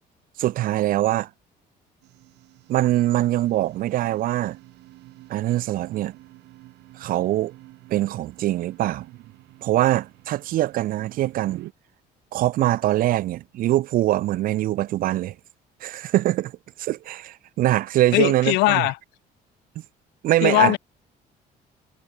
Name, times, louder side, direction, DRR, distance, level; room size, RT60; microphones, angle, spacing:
voice 1, 0.4-1.3 2.7-4.6 5.3-6.2 7.0-7.5 7.9-9.1 9.6-11.6 12.3-15.3 15.8-16.5 16.8-18.9 20.2-20.7, right 15 dB, 55° right, 0.4 m, -23 dB
sound 1, 2.0-11.7, right 18 dB, 85° right, 7.1 m, -48 dB
voice 2, 18.1-19.0 20.4-20.8, left 23 dB, 85° left, 0.4 m, -19 dB
cardioid pair, 110°, 17 cm